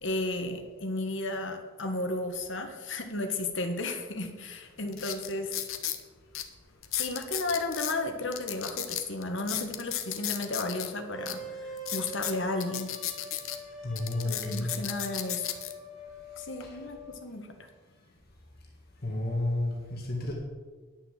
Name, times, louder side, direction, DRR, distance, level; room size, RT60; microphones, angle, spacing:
voice 1, 0.0-5.6 6.9-12.9 14.2-15.5 16.4-17.7, left 2 dB, 60° left, 5 dB, 1.5 m, -33 dB
sound 1, 4.2-4.3 4.9-6.0 6.3-6.4 6.8-8.0 8.3-10.9 11.3-11.4 11.8-13.6 14.0-15.7 16.4-16.6, left 12 dB, 80° left, 1.0 m, -34 dB
sound 2, 11.1-17.3, equal, ahead, 2.3 m, -44 dB
voice 2, 13.8-14.7 16.6-16.8 19.0-20.3, left 1 dB, 45° left, -1 dB, 1.9 m, -31 dB
10.5 x 6.9 x 7.4 m, 1.4 s
head